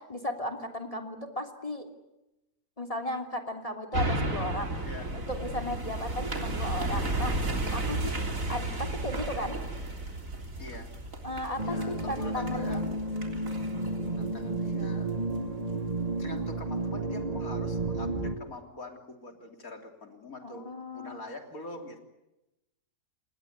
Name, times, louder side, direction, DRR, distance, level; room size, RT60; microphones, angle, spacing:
voice 1, 0.1-1.9 2.8-4.8 5.1-8.2 8.5-9.6 11.2-12.8 20.4-21.2, left 1 dB, 20° left, 4 dB, 3.1 m, -35 dB
sound 1, 3.9-15.4 15.8-15.9, right 2 dB, 55° right, 3.9 m, -33 dB
voice 2, 10.6-10.9 11.6-12.8 14.2-15.1 16.2-20.6 20.9-22.0, left 2 dB, 60° left, 4 dB, 3.8 m, -43 dB
sound 2, 11.6-18.4, right 2 dB, 25° right, 1.7 m, -32 dB
28.0 x 20.5 x 9.5 m, 0.94 s
omnidirectional pair, 1.7 m